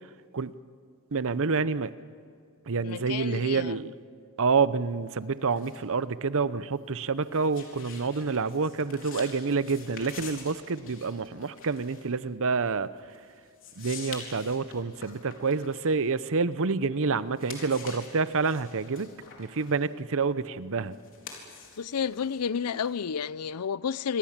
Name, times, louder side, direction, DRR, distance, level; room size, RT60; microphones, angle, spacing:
voice 1, 1.1-1.9 2.7-3.9 4.4-12.9 13.8-19.1 19.4-21.0, right 4 dB, 65° right, 0.8 m, -28 dB
voice 2, 2.8-3.8 21.8-24.2, left 6 dB, 90° left, 0.6 m, -31 dB
sound 1, 5.1-16.8 17.2-23.3, left 5 dB, 60° left, 4.2 m, -47 dB
27.0 x 23.5 x 7.4 m
head